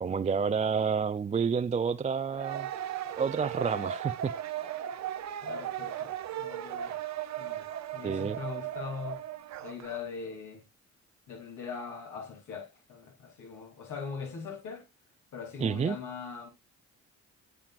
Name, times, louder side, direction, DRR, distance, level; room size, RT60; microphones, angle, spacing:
voice 1, 0.0-2.7 3.2-4.3 8.0-8.4 15.6-16.0, right 6 dB, 25° right, 0.4 m, -29 dB
sound 1, 2.3-10.0, right 11 dB, 65° right, 0.8 m, -37 dB
voice 2, 5.4-6.1 6.4-7.0 7.4-7.7 7.9-9.2 9.6-10.6 11.3-14.8 15.3-16.5, left 5 dB, 80° left, 3.1 m, -41 dB
8.8 x 7.0 x 2.5 m
cardioid pair, 90°, 30 cm